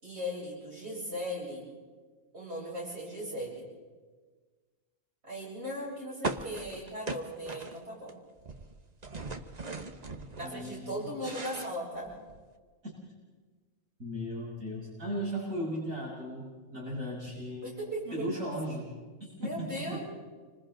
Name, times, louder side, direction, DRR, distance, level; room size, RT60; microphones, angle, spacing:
voice 1, 0.0-1.7 2.3-3.6 5.2-8.1 10.3-12.1 17.6-18.3 19.4-20.0, equal, 45° right, -6 dB, 8.1 m, -38 dB
sound 1, 6.2-8.1 8.4-10.5 10.9-12.5, right 3 dB, 30° right, 1.1 m, -39 dB
voice 2, 10.4-11.3 14.0-17.8 18.1-20.0, equal, 65° right, -7 dB, 7.6 m, -37 dB
29.0 x 25.5 x 3.9 m, 1.4 s
omnidirectional pair, 1.5 m